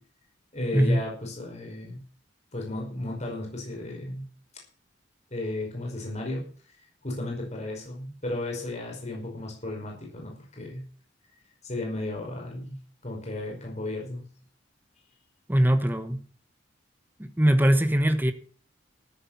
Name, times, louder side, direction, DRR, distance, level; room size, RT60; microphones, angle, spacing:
voice 1, 0.5-2.0 2.5-4.3 5.3-6.5 6.8-10.8 11.6-14.2, left 2 dB, 35° left, 5.2 m, -34 dB
voice 2, 15.5-16.2 17.2-18.3, equal, 10° right, 1.2 m, -21 dB
13.5 x 8.7 x 7.3 m
head